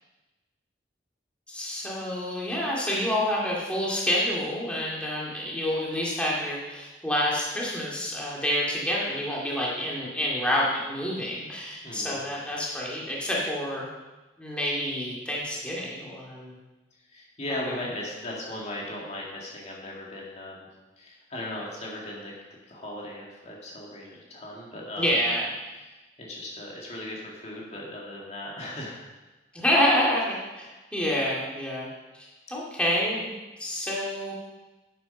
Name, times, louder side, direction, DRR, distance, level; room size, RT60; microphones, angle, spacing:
voice 1, 1.5-13.9 14.4-16.6 25.0-25.5 29.5-31.9 32.1-33.3 33.6-34.3, equal, 5° left, -5 dB, 2.2 m, -28 dB
voice 2, 11.8-12.2 17.1-20.7 21.0-22.3 22.7-25.1 25.8-29.0, left 1 dB, 40° left, -3 dB, 2.1 m, -37 dB
10.0 x 8.7 x 5.4 m, 1.1 s
head